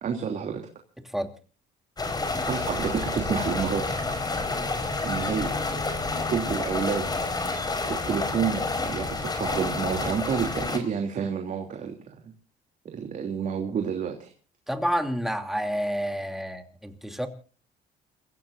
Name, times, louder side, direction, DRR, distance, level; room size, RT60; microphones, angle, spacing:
voice 1, 0.0-0.6 2.2-3.8 4.1-4.2 5.0-5.5 6.3-7.1 7.9-12.1 12.9-14.3, right 7 dB, 50° right, 3 dB, 3.0 m, -29 dB
sound 1, 2.0-10.8, left 3 dB, 25° left, 4.7 m, -29 dB
voice 2, 14.7-17.3, equal, ahead, 6 dB, 2.9 m, -29 dB
29.0 x 16.5 x 2.6 m, 0.38 s
cardioid pair, 110°, 17 cm